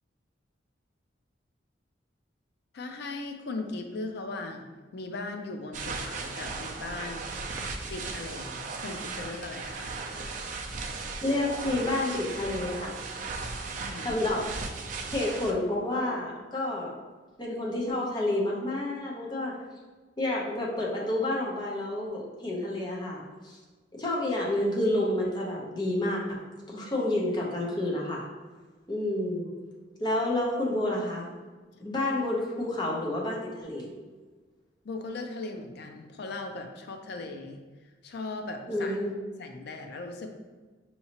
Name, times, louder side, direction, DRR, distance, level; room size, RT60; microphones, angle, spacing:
voice 1, 2.7-4.6 4.9-7.3 7.9-10.0 13.8-14.2 34.8-37.6 38.0-39.0 39.4-40.3, left 3 dB, 60° left, 5 dB, 0.4 m, -38 dB
sound 1, 5.7-15.5, right 4 dB, 45° right, 0.4 m, -37 dB
voice 2, 11.2-13.0 14.0-14.5 15.1-16.9 17.4-19.5 20.2-23.6 23.9-26.4 26.7-28.3 28.9-29.5 30.0-31.3 31.8-33.9 38.7-39.1, left 1 dB, 25° left, -3 dB, 0.8 m, -29 dB
5.5 x 2.9 x 2.9 m, 1.3 s
head